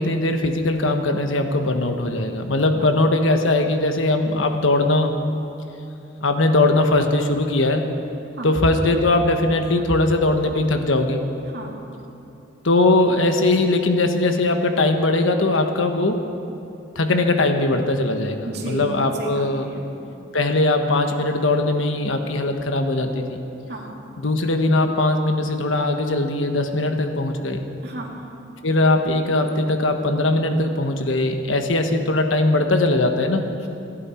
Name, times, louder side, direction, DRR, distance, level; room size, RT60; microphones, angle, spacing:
voice 1, 0.0-5.1 6.2-7.8 8.4-11.2 12.6-16.2 16.9-19.7 20.3-23.4 24.2-27.7 28.6-33.4, left 2 dB, 90° left, 5 dB, 1.3 m, -20 dB
voice 2, 11.4-11.8 18.4-19.8 23.7-23.9 27.8-28.1, right 1 dB, 55° right, -1 dB, 2.4 m, -33 dB
28.0 x 11.0 x 4.5 m, 2.8 s
head